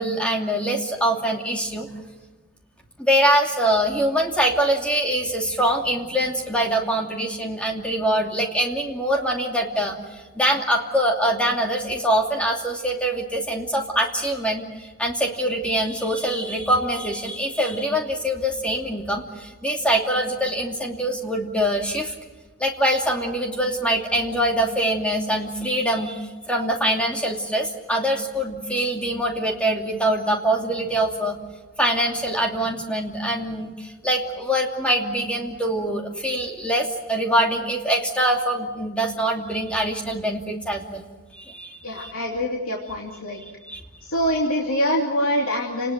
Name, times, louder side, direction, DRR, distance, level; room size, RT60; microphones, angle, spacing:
voice 1, 0.0-1.9 3.0-22.1 22.6-31.4 31.8-41.0 41.3-42.1 43.6-43.8, right 1 dB, 5° left, 1 dB, 2.7 m, -24 dB
voice 2, 41.8-43.4 44.0-45.9, equal, 75° left, -2 dB, 3.0 m, -24 dB
30.0 x 19.5 x 7.5 m, 1.2 s
head